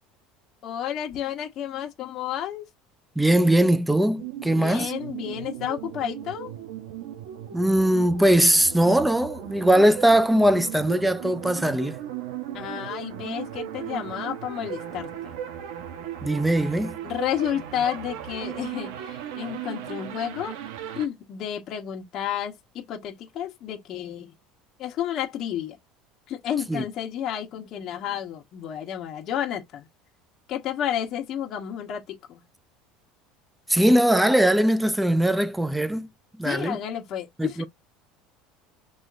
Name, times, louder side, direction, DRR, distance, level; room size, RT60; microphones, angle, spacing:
voice 1, 0.6-2.6 4.5-6.5 12.5-15.3 17.0-20.6 20.9-24.3 24.8-25.8 26.3-29.9 30.5-32.4 36.4-37.7, left 10 dB, 45° left, 1.4 m, -31 dB
voice 2, 3.2-4.9 7.5-12.0 16.2-17.0 26.7-26.8 33.7-36.1 36.4-36.8 37.4-37.6, right 1 dB, 5° right, 0.6 m, -20 dB
sound 1, 4.2-21.1, right 10 dB, 80° right, 1.0 m, -37 dB
6.1 x 3.0 x 2.5 m
cardioid pair, 135°, 0 cm